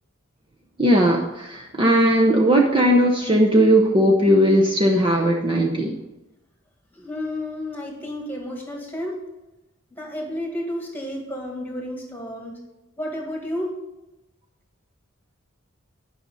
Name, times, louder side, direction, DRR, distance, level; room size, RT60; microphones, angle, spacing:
voice 1, 0.8-6.0, equal, 25° right, -1 dB, 0.8 m, -18 dB
voice 2, 6.9-9.2 9.9-12.6 13.0-13.7, left 1 dB, 10° left, 0 dB, 1.9 m, -31 dB
10.0 x 5.6 x 5.4 m, 0.99 s
head